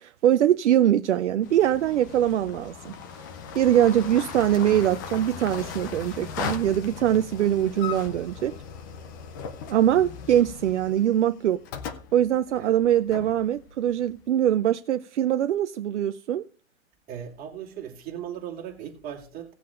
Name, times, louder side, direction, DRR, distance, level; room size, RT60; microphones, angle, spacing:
voice 1, 0.0-2.9 3.5-8.5 9.7-11.6 12.1-16.4, right 11 dB, 60° right, 0.6 m, -22 dB
sound 1, 1.4-14.4, left 6 dB, 15° left, 0.4 m, -38 dB
voice 2, 17.1-19.5, right 9 dB, 20° right, 2.7 m, -38 dB
18.0 x 7.5 x 2.5 m
hypercardioid pair, 140°, 40 cm